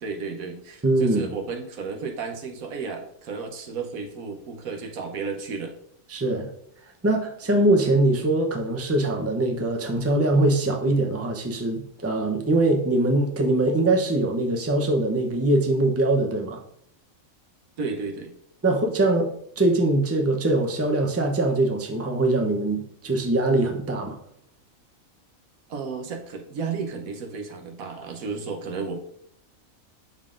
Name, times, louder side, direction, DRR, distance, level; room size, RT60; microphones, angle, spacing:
voice 1, 0.0-5.8 17.8-18.3 25.7-29.0, right 5 dB, 85° right, 4 dB, 1.3 m, -33 dB
voice 2, 0.8-1.3 6.1-6.5 7.0-16.6 18.6-24.2, right 2 dB, 15° right, 2 dB, 0.6 m, -22 dB
11.0 x 3.8 x 2.5 m, 0.67 s
omnidirectional pair, 1.4 m